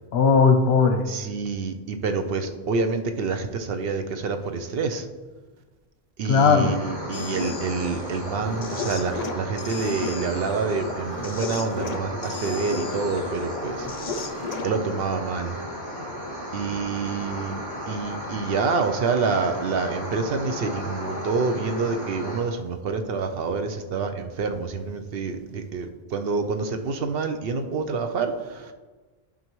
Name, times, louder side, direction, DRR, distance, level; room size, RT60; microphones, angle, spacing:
voice 1, 0.1-1.0 6.3-6.8, left 5 dB, 85° left, 7 dB, 1.0 m, -18 dB
voice 2, 1.1-5.1 6.2-13.9 14.6-15.6 16.5-28.7, right 4 dB, 70° right, 7 dB, 0.9 m, -27 dB
sound 1, 6.5-22.4, equal, 45° right, 2.5 m, -34 dB
sound 2, 7.1-14.7, left 4 dB, 45° left, 0.6 m, -35 dB
11.0 x 5.3 x 3.1 m, 1.3 s
omnidirectional pair, 1.0 m